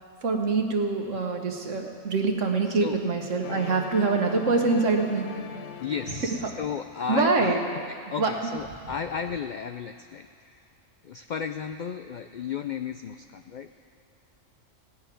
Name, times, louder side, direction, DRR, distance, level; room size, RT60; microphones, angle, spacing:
voice 1, 0.2-5.3 6.4-6.5 7.1-7.6 8.2-8.3, right 4 dB, 70° right, 3 dB, 1.7 m, -25 dB
sound 1, 3.4-7.3, left 9 dB, 65° left, 0.8 m, -40 dB
voice 2, 5.8-7.5 8.1-10.6 11.0-13.7, left 7 dB, 85° left, 8 dB, 0.4 m, -34 dB
17.5 x 6.5 x 9.2 m, 2.6 s
omnidirectional pair, 1.4 m